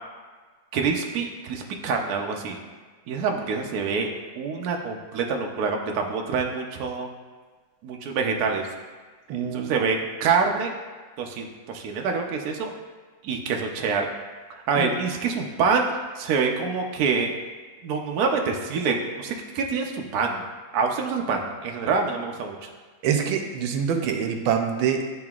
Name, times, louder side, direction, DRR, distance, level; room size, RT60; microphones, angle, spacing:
voice 1, 0.7-2.6 3.1-4.1 4.4-7.1 7.8-8.7 9.5-10.7 11.2-12.7 13.2-14.1 14.5-17.3 17.8-20.4 20.7-22.6, right 5 dB, 65° right, 2 dB, 1.0 m, -26 dB
voice 2, 9.3-9.7 14.7-14.9 23.0-25.2, right 7 dB, 90° right, 4 dB, 1.5 m, -25 dB
10.5 x 3.8 x 2.4 m, 1.4 s
omnidirectional pair, 2.1 m